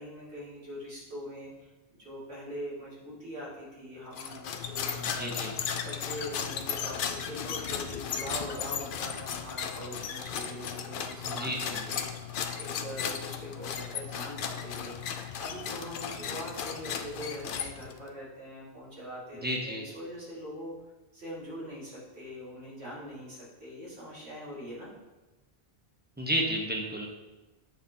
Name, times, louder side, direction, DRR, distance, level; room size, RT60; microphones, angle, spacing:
voice 1, 0.0-1.7 1.9-5.4 5.8-12.2 12.6-15.0 15.4-20.7 21.1-24.9, equal, 80° right, -7 dB, 2.4 m, -42 dB
sound 1, 4.1-18.1, left 7 dB, 60° left, 0.6 m, -35 dB
voice 2, 4.9-5.5 11.2-11.8 19.4-19.8 26.2-27.1, equal, 10° right, -1 dB, 0.9 m, -32 dB
8.6 x 5.3 x 2.8 m, 1.1 s
omnidirectional pair, 1.1 m